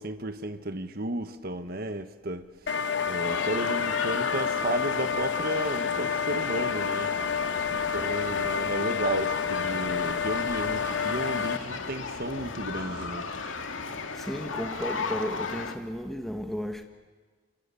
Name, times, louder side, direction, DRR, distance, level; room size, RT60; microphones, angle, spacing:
voice 1, 0.0-2.7 3.0-7.4 7.7-13.3, right 1 dB, 50° right, 1.4 m, -33 dB
sound 1, 2.7-11.6, left 6 dB, 65° left, 1.1 m, -29 dB
sound 2, 3.2-15.8, left 4 dB, 85° left, 2.2 m, -36 dB
sound 3, 6.3-14.1, right 1 dB, 75° right, 3.5 m, -51 dB
voice 2, 14.1-16.8, equal, ahead, 1.6 m, -34 dB
29.0 x 24.0 x 8.5 m
head